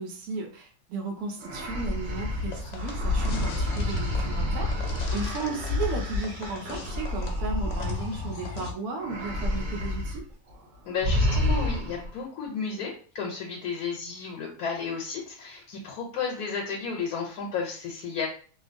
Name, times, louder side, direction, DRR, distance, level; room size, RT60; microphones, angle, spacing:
voice 1, 0.0-10.2, right 4 dB, 85° right, 3 dB, 1.1 m, -35 dB
sound 1, 1.4-8.5 9.0-10.2 10.5-10.7 11.0-12.1, left 1 dB, 60° right, 1.1 m, -29 dB
sound 2, 2.0-8.7, left 3 dB, 65° left, 0.8 m, -37 dB
voice 2, 10.8-18.3, left 5 dB, 80° left, 0 dB, 1.1 m, -33 dB
2.7 x 2.2 x 2.5 m, 0.42 s
omnidirectional pair, 1.6 m